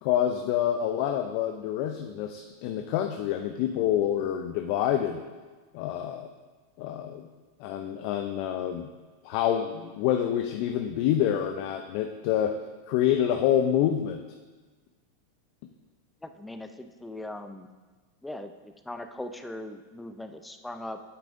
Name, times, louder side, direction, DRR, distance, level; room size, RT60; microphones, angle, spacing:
voice 1, 0.0-5.2 5.7-6.3 6.8-7.3 7.6-8.9 9.2-12.5 12.9-14.2, left 10 dB, 55° left, 5 dB, 0.5 m, -27 dB
voice 2, 16.2-17.7 18.2-21.0, left 1 dB, 5° left, 8 dB, 0.5 m, -40 dB
8.6 x 8.4 x 2.6 m, 1.3 s
hypercardioid pair, 100°, 0 cm